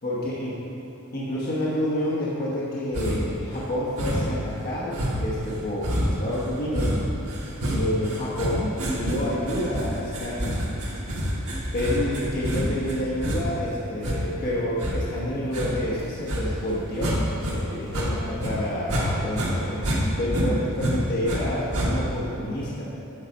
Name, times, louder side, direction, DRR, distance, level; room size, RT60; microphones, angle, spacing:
voice 1, 0.0-0.5 1.1-7.0 7.7-10.6 11.7-22.9, left 1 dB, 45° left, -7 dB, 1.1 m, -29 dB
sound 1, 2.9-3.4 4.0-4.4 4.9-17.5 17.8-19.1 19.3-21.4 21.7-22.2, equal, 80° right, 1.6 m, -28 dB
8.7 x 4.1 x 5.2 m, 2.8 s
head